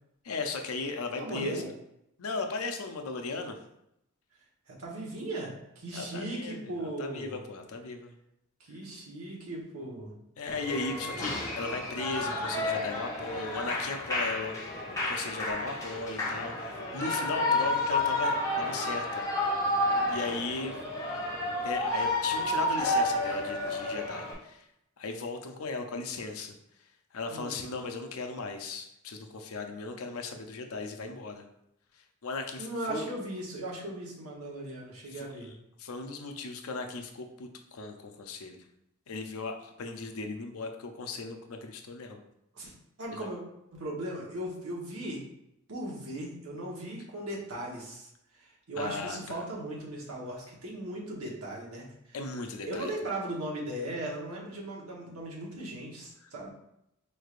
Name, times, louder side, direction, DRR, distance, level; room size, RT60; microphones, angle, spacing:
voice 1, 0.2-1.7 2.2-3.6 5.9-8.2 10.4-14.5 15.1-19.2 20.1-20.8 21.6-24.6 25.0-26.6 27.1-31.5 32.2-33.1 35.1-35.3 35.8-38.6 39.1-42.2 43.1-43.3 48.8-49.4 52.1-52.9 56.2-56.3, left 3 dB, 70° left, 5 dB, 0.5 m, -37 dB
voice 2, 1.1-1.7 4.7-7.4 8.6-10.1 27.3-27.6 32.6-35.5 42.5-42.7 43.0-43.4 43.7-45.2 45.7-48.1 48.4-52.2 52.7-56.5, right 1 dB, 70° right, -3 dB, 1.1 m, -38 dB
Shout / Cheering, 10.5-24.3, left 1 dB, 15° left, 0.9 m, -31 dB
sound 1, 15.5-16.5, equal, 15° right, 0.4 m, -44 dB
4.5 x 3.3 x 2.4 m, 0.81 s
head